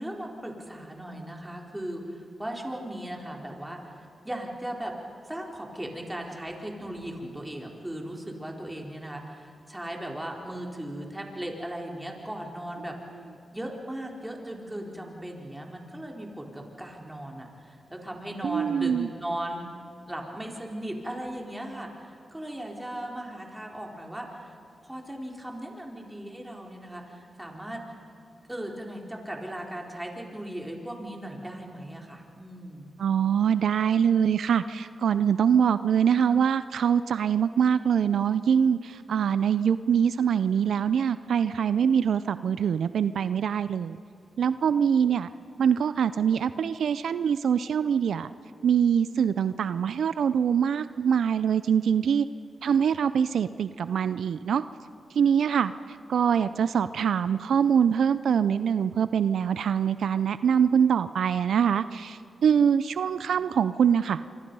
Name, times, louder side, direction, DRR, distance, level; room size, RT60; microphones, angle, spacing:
voice 1, 0.0-3.8 4.2-4.9 5.3-13.0 13.5-19.7 20.1-24.6 24.8-27.8 28.5-32.9 56.4-56.5, right 1 dB, 10° right, 0 dB, 4.1 m, -37 dB
voice 2, 18.4-19.1 33.0-44.0 44.4-45.3 45.6-48.3 48.6-52.3 52.6-54.6 55.1-55.7 56.1-64.2, right 7 dB, 85° right, 14 dB, 0.5 m, -24 dB
26.5 x 25.0 x 5.5 m, 2.7 s
cardioid pair, 65°, 0 cm